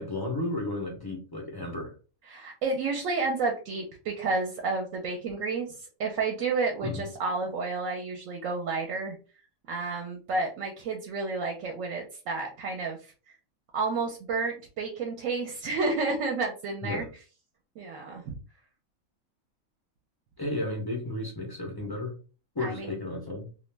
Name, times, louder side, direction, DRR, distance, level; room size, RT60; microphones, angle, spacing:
voice 1, 0.0-1.9 6.8-7.1 16.8-17.1 20.4-22.1 22.5-23.5, left 2 dB, 40° left, -1 dB, 0.3 m, -33 dB
voice 2, 2.3-9.2 9.7-13.1 13.7-17.0 17.8-18.3 22.6-22.9, right 3 dB, 75° right, 1 dB, 0.9 m, -31 dB
2.5 x 2.1 x 3.1 m, 0.35 s
omnidirectional pair, 1.4 m